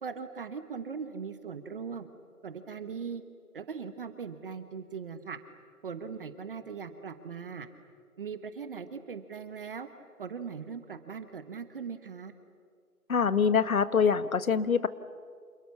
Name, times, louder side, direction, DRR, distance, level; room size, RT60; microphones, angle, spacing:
voice 1, 0.0-2.1 2.4-3.2 3.5-5.4 5.8-7.7 8.2-9.9 10.2-12.3, right 6 dB, 35° right, 10 dB, 1.3 m, -39 dB
voice 2, 13.1-14.9, left 6 dB, 65° left, 14 dB, 1.5 m, -24 dB
30.0 x 28.0 x 7.2 m, 2.1 s
figure-of-eight pair, 150°, 44 cm